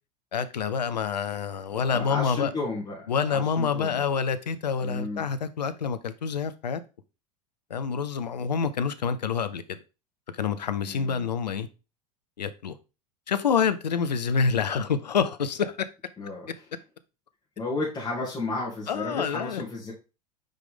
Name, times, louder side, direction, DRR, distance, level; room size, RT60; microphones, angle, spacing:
voice 1, 0.3-2.5 3.1-6.8 7.7-9.8 10.3-11.7 12.4-12.8 13.3-15.8 18.9-19.6, left 6 dB, 80° left, 0.6 m, -27 dB
voice 2, 1.9-4.1 4.8-5.2 10.9-11.3 16.2-16.5 17.6-19.9, left 3 dB, 20° left, 2.5 m, -33 dB
5.2 x 4.9 x 3.8 m
figure-of-eight pair, 80°, 21 cm